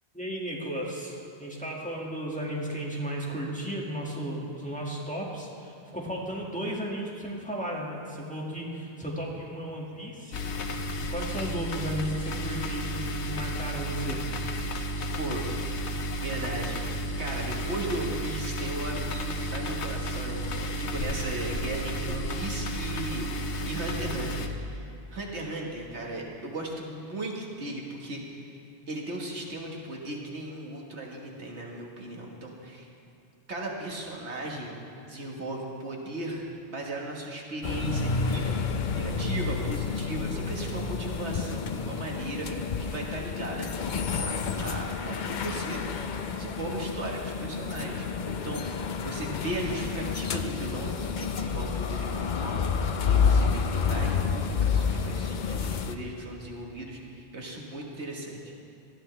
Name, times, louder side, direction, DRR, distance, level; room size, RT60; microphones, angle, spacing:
voice 1, 0.1-10.4 11.1-14.2, equal, 5° left, -4 dB, 1.9 m, -34 dB
sound 1, 10.3-24.5, equal, 85° left, 1.2 m, -32 dB
voice 2, 15.2-15.5 16.2-28.6 28.9-32.9 33.5-34.8 35.1-38.6 39.0-43.7 44.1-45.9 46.3-48.7 49.0-58.4, right 1 dB, 80° right, -1 dB, 1.9 m, -37 dB
sound 2, 37.6-56.0, left 5 dB, 50° left, 0.7 m, -29 dB
19.0 x 13.0 x 3.3 m, 2.8 s
omnidirectional pair, 1.1 m